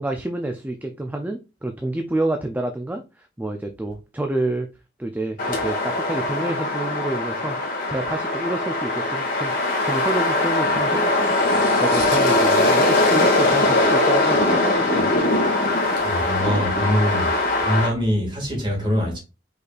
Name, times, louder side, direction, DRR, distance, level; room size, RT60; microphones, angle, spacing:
voice 1, 0.0-3.0 3.4-4.7 5.0-7.6 7.9-11.3 11.8-15.1, right 2 dB, 10° right, 0.4 m, -28 dB
sound 1, 5.4-17.9, left 2 dB, 45° left, 1.7 m, -21 dB
voice 2, 16.0-19.2, equal, 25° right, 1.9 m, -24 dB
5.3 x 4.1 x 2.4 m
head